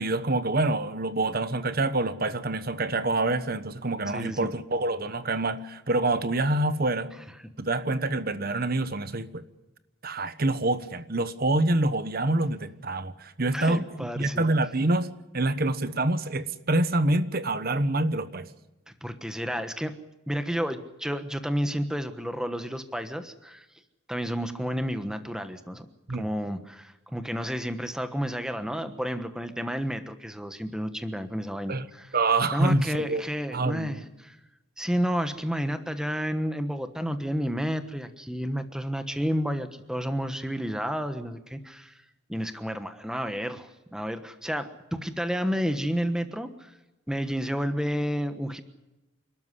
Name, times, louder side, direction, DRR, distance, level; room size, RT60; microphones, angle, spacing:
voice 1, 0.0-7.1 7.6-9.4 10.0-13.8 14.2-15.1 15.3-18.5 26.1-26.2 31.7-31.9 32.1-33.2 33.5-34.0, right 2 dB, 45° right, 12 dB, 1.1 m, -26 dB
voice 2, 4.1-4.5 13.5-14.4 19.0-19.9 20.3-23.6 24.1-25.9 26.1-32.1 32.5-34.4 34.8-42.0 42.3-46.7 47.1-48.6, equal, 5° right, 9 dB, 1.2 m, -31 dB
28.0 x 13.0 x 9.9 m, 1.0 s
head